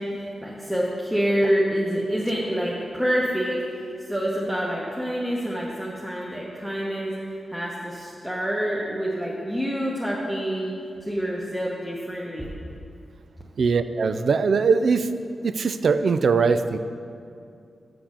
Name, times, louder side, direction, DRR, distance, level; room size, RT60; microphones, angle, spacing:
voice 1, 0.0-7.1 7.5-10.7 11.0-12.5, equal, 5° right, -5 dB, 1.1 m, -27 dB
voice 2, 13.6-15.1 15.4-16.8, right 5 dB, 70° right, 11 dB, 0.4 m, -21 dB
7.1 x 6.0 x 6.6 m, 2.4 s
cardioid pair, 70°, 0 cm